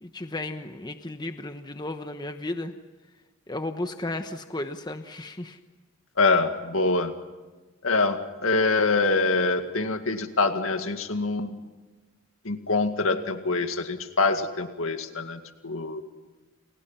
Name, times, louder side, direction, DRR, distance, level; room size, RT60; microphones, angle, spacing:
voice 1, 0.0-2.7 3.5-5.6, left 2 dB, 20° left, 7 dB, 1.1 m, -34 dB
voice 2, 6.2-7.1 7.8-11.6 12.5-16.0, left 3 dB, 75° left, 7 dB, 2.1 m, -25 dB
29.5 x 29.5 x 5.7 m, 1.3 s
head